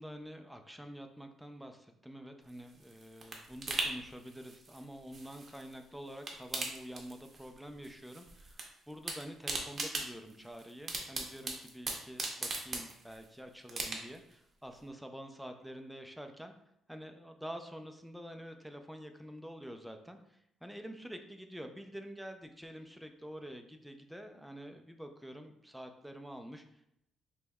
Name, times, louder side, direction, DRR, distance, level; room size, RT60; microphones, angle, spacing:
voice 1, 0.0-16.5 16.9-26.9, equal, ahead, 5 dB, 0.4 m, -47 dB
sound 1, 2.5-5.8 6.1-7.6 7.8-8.7 8.9-13.3 13.7-14.3 14.7-14.8, right 3 dB, 35° right, 0.7 m, -39 dB
5.2 x 3.0 x 2.3 m, 0.78 s
cardioid pair, 135°, 0 cm